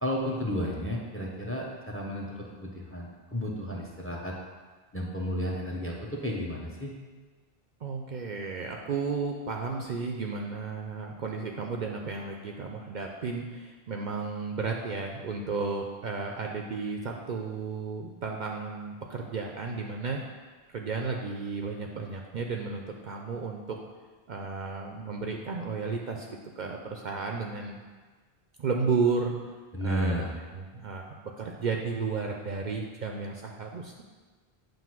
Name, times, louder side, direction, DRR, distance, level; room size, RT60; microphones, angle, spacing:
voice 1, 0.0-4.3 4.9-6.9 29.7-30.3, equal, 15° left, -1 dB, 0.6 m, -32 dB
voice 2, 7.8-20.2 20.7-23.8 24.3-27.8 28.6-29.3 29.8-30.2 30.5-34.0, right 4 dB, 55° right, 1 dB, 0.6 m, -33 dB
7.7 x 2.6 x 5.9 m, 1.4 s
omnidirectional pair, 1.0 m